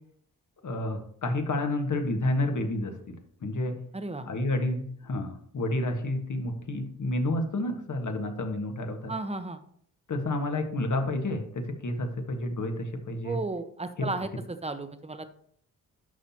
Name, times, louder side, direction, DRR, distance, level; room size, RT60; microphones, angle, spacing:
voice 1, 0.6-3.2 3.4-3.7 4.2-9.1 10.1-13.4, left 1 dB, 55° left, 5 dB, 1.6 m, -30 dB
voice 2, 3.9-4.3 9.1-9.6 13.2-15.3, right 3 dB, 15° right, 9 dB, 1.0 m, -34 dB
11.0 x 5.5 x 2.9 m, 0.63 s
supercardioid pair, 45°, 36 cm